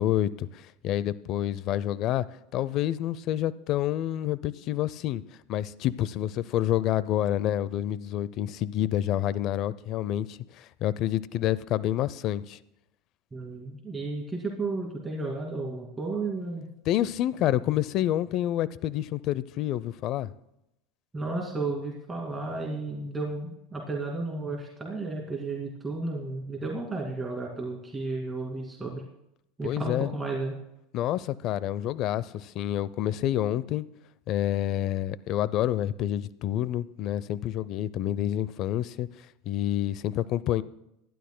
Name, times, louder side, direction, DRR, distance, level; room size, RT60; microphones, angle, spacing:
voice 1, 0.0-2.3 2.5-5.2 5.5-12.6 16.9-20.3 29.6-30.1 30.9-33.9 34.3-39.1 39.5-40.6, left 12 dB, 50° left, 0.5 m, -28 dB
voice 2, 13.3-16.7 21.1-29.0 29.6-30.6, right 3 dB, 15° right, 2.3 m, -33 dB
24.5 x 12.0 x 2.2 m
supercardioid pair, 120°, 0 cm